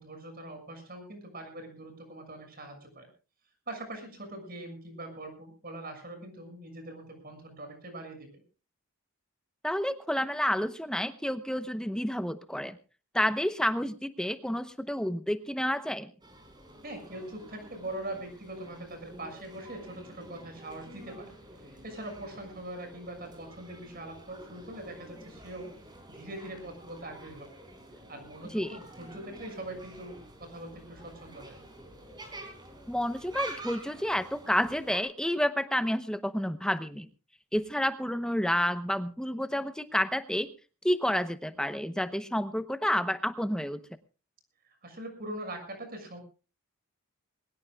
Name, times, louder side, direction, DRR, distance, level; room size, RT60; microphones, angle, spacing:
voice 1, 0.0-3.1 3.7-8.4 16.8-25.8 26.1-27.5 28.1-31.6 44.6-46.2, right 1 dB, 40° right, 6 dB, 6.4 m, -42 dB
voice 2, 9.6-12.8 13.1-16.1 28.5-28.8 32.9-37.1 37.5-40.5 40.8-43.8, equal, 5° left, 11 dB, 0.8 m, -30 dB
sound 1, 16.2-35.0, right 1 dB, 20° right, 4.0 m, -48 dB
22.0 x 19.0 x 2.4 m, 0.35 s
head